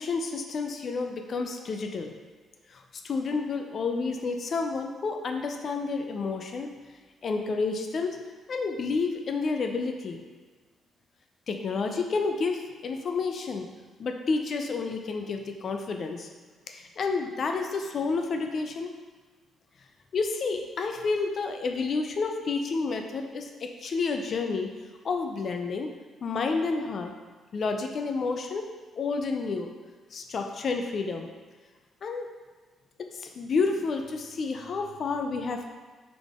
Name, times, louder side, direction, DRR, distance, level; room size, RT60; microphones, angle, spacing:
voice 1, 0.0-2.1 2.7-6.7 7.2-8.2 8.5-10.2 11.5-13.7 14.0-16.3 16.7-18.9 20.1-24.7 25.0-25.9 26.2-27.1 27.5-28.7 28.9-29.7 30.1-31.3 32.0-32.3 33.0-35.7, left 4 dB, 50° left, 4 dB, 0.4 m, -30 dB
3.8 x 3.5 x 3.6 m, 1.4 s
cardioid pair, 90°, 0 cm